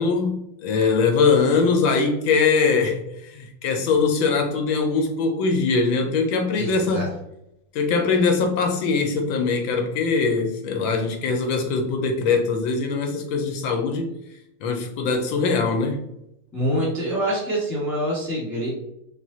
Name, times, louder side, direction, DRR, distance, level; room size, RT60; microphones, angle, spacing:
voice 1, 0.0-7.1 7.7-14.1 14.6-16.0, left 4 dB, 75° left, 4 dB, 1.3 m, -22 dB
voice 2, 6.6-7.1 16.5-18.7, equal, 10° left, -7 dB, 1.1 m, -25 dB
5.4 x 2.5 x 2.8 m, 0.84 s
omnidirectional pair, 2.3 m